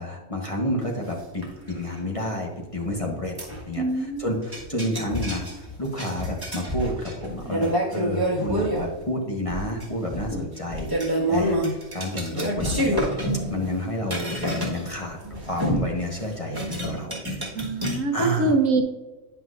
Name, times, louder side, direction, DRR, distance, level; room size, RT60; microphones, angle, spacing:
voice 1, 0.0-3.4 3.7-10.9 11.3-13.0 13.5-17.1 18.1-18.5, left 1 dB, 30° left, -1 dB, 1.0 m, -30 dB
sound 1, 1.1-1.2 1.4-2.0 2.9-3.0 3.4-3.7 4.5-8.9 9.5-9.9 10.1-14.9 15.2-18.0, right 1 dB, 15° right, 1.5 m, -28 dB
voice 2, 3.8-4.2 4.7-4.8 17.5-18.8, right 3 dB, 75° right, 4 dB, 1.2 m, -24 dB
9.6 x 5.8 x 2.5 m, 1.2 s
omnidirectional pair, 1.4 m